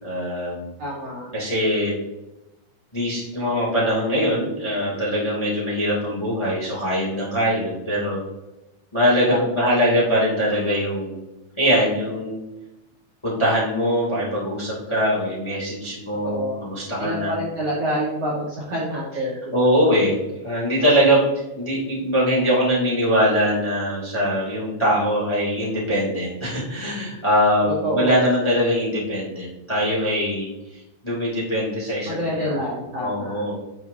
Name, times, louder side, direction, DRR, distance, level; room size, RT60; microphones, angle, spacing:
voice 1, 0.0-0.7 1.3-1.9 2.9-8.2 8.9-11.2 11.6-12.4 13.2-17.3 19.5-20.1 20.4-30.5 31.0-32.2 32.4-32.6 33.0-33.5, equal, 10° left, -6 dB, 1.4 m, -22 dB
voice 2, 0.8-1.3 9.3-9.7 16.2-16.6 17.0-19.5 27.7-28.2 32.0-33.4, equal, 90° right, -6 dB, 1.3 m, -27 dB
13.0 x 5.9 x 2.8 m, 0.97 s
omnidirectional pair, 5.7 m